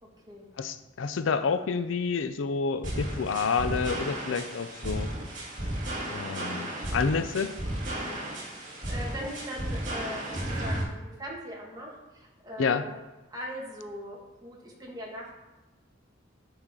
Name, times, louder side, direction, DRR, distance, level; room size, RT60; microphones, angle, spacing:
voice 1, 0.0-0.5 8.4-13.0 13.3-15.3, equal, 20° right, -3 dB, 1.8 m, -41 dB
voice 2, 0.6-5.1 6.1-7.6 12.6-12.8, left 5 dB, 85° left, 11 dB, 0.5 m, -29 dB
sound 1, 2.8-10.8, right 1 dB, 45° right, 2.3 m, -34 dB
10.5 x 4.6 x 3.7 m, 1.1 s
head